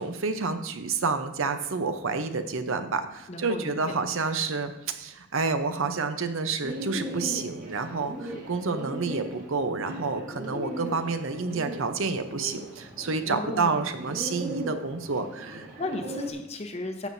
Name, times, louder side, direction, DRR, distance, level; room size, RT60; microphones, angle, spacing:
voice 1, 0.0-15.7, right 4 dB, 65° right, 8 dB, 0.7 m, -29 dB
voice 2, 3.3-4.0 13.3-13.8 15.8-17.1, left 2 dB, 30° left, 5 dB, 0.8 m, -35 dB
Bird, 6.6-16.3, right 1 dB, 40° right, 1.8 m, -38 dB
12.0 x 7.2 x 2.7 m, 0.95 s
head